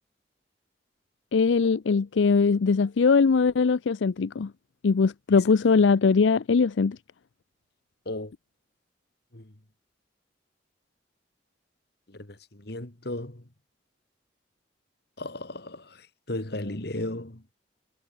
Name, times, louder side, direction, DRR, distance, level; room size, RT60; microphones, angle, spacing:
voice 1, 1.3-4.5 4.8-7.0, left 5 dB, 75° left, 0.5 m, -21 dB
voice 2, 12.1-13.4 15.2-17.4, left 1 dB, 60° left, 2.3 m, -35 dB
head